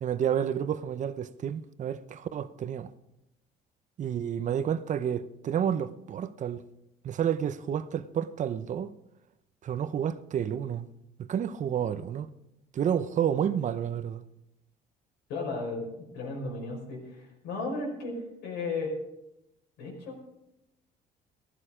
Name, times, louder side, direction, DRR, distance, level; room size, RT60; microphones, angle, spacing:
voice 1, 0.0-2.9 4.0-6.6 7.0-8.9 9.6-10.9 11.2-12.3 12.7-14.2, right 9 dB, 45° right, 0.8 m, -30 dB
voice 2, 15.3-15.9 16.1-19.0 19.8-20.2, left 3 dB, 90° left, 5.0 m, -34 dB
14.5 x 12.5 x 5.0 m
cardioid pair, 110°, 17 cm